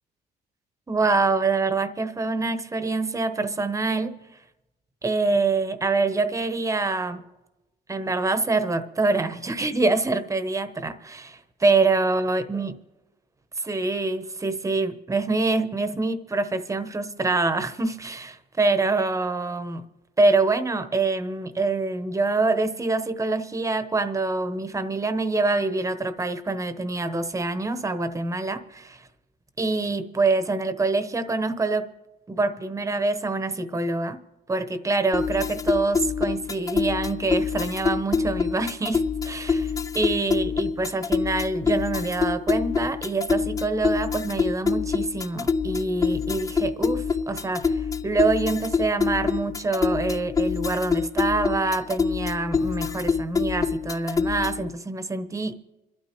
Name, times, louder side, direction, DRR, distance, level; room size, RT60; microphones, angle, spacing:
voice 1, 0.9-4.1 5.0-7.2 7.9-12.7 13.6-19.8 20.2-29.1 29.6-31.9 32.3-34.2 34.5-55.6, right 3 dB, 20° right, 11 dB, 1.0 m, -25 dB
sound 1, 35.1-54.7, left 5 dB, 20° left, 0.5 m, -26 dB
27.0 x 12.5 x 3.1 m, 1.0 s
cardioid pair, 110°, 17 cm